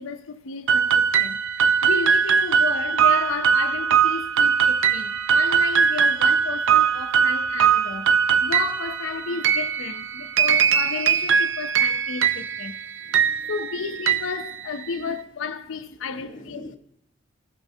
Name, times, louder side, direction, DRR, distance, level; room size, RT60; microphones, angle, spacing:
voice 1, 0.0-8.1 8.4-12.8 13.5-16.8, left 5 dB, 85° left, 0.5 m, -32 dB
sound 1, 0.7-15.1, right 7 dB, 70° right, 0.4 m, -21 dB
voice 2, 13.1-13.5 14.9-15.2 16.2-16.8, left 2 dB, 45° left, 0.6 m, -41 dB
15.5 x 5.7 x 2.6 m
head